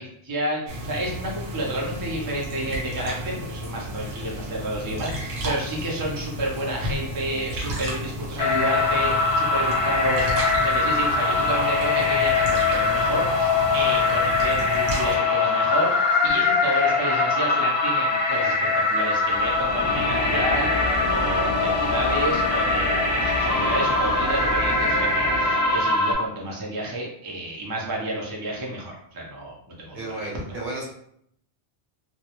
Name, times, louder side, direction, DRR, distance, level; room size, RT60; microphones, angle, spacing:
voice 1, 0.0-15.9 16.2-18.6 18.9-30.3, right 1 dB, 35° right, -2 dB, 0.3 m, -30 dB
sound 1, 0.7-15.2, equal, 90° right, 1.0 m, -33 dB
sound 2, 8.4-26.1, left 3 dB, 65° left, 0.7 m, -22 dB
sound 3, 19.3-26.2, left 1 dB, 25° left, 0.8 m, -31 dB
voice 2, 29.9-30.8, right 2 dB, 65° right, -2 dB, 0.9 m, -32 dB
2.2 x 2.0 x 2.8 m, 0.69 s
omnidirectional pair, 1.1 m